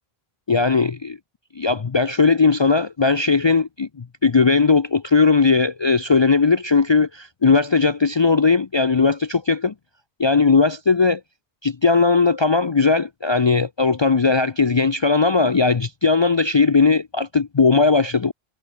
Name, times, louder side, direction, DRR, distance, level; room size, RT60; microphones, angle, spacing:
voice 1, 0.5-1.2 1.6-9.7 10.2-11.2 11.6-18.3, left 4 dB, 35° left, 0.5 m, -18 dB
omnidirectional pair, 1.1 m